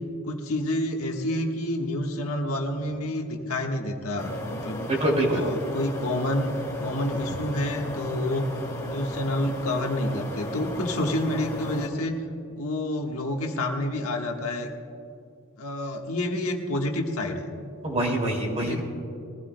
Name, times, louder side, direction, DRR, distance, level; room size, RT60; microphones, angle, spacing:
voice 1, 0.2-5.0 5.3-6.5 6.8-8.5 8.8-12.2 12.5-14.7 15.6-17.5 18.7-18.8, left 1 dB, 75° left, 1 dB, 1.5 m, -28 dB
sound 1, 4.2-11.9, left 1 dB, 15° left, 2.2 m, -35 dB
voice 2, 4.9-5.4 17.8-18.8, right 1 dB, 30° right, 0 dB, 2.6 m, -25 dB
21.5 x 15.5 x 2.3 m, 2.6 s
head